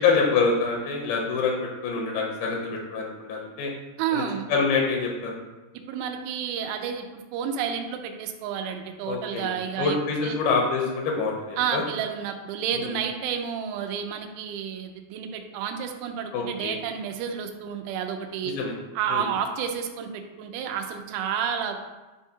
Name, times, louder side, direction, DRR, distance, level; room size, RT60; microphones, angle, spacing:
voice 1, 0.0-3.7 4.1-4.2 4.5-5.4 9.1-11.8 12.7-12.9 16.3-16.8 18.4-18.7 19.1-19.3, left 4 dB, 85° left, 0 dB, 2.1 m, -26 dB
voice 2, 4.0-4.5 5.9-10.0 10.2-10.4 11.6-18.5 19.0-21.8, right 8 dB, 85° right, 5 dB, 3.0 m, -30 dB
10.5 x 3.5 x 2.8 m, 1.2 s
omnidirectional pair, 5.3 m